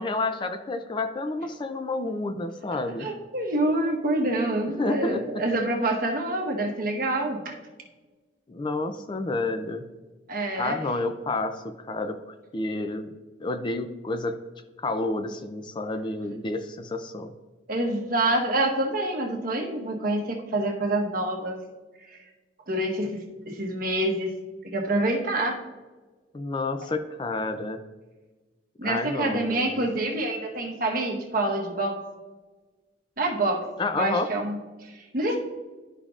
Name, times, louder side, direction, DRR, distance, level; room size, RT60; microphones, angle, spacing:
voice 1, 0.0-3.1 4.8-5.2 8.5-9.8 10.6-13.1 13.4-14.4 14.8-17.3 26.3-27.8 28.8-29.8 33.8-34.3, left 2 dB, 25° left, 8 dB, 0.4 m, -30 dB
voice 2, 3.0-7.5 10.3-10.8 17.7-21.6 22.1-22.2 22.7-24.3 24.6-25.6 28.8-32.0 33.2-33.6 34.0-35.4, right 1 dB, 50° right, 1 dB, 1.2 m, -27 dB
12.0 x 5.0 x 2.4 m, 1.2 s
head